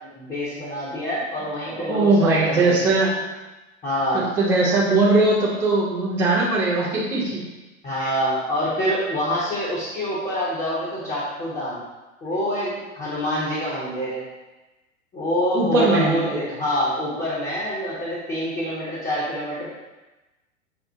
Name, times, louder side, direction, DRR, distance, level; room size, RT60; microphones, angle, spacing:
voice 1, 0.0-2.9 3.8-4.3 7.8-11.8 12.2-14.2 15.1-19.7, equal, 20° left, -8 dB, 0.9 m, -26 dB
voice 2, 1.7-3.1 4.1-7.4 8.0-8.1 15.5-16.4, right 2 dB, 5° right, -7 dB, 0.3 m, -20 dB
5.8 x 2.1 x 2.7 m, 1.1 s
hypercardioid pair, 110°, 40 cm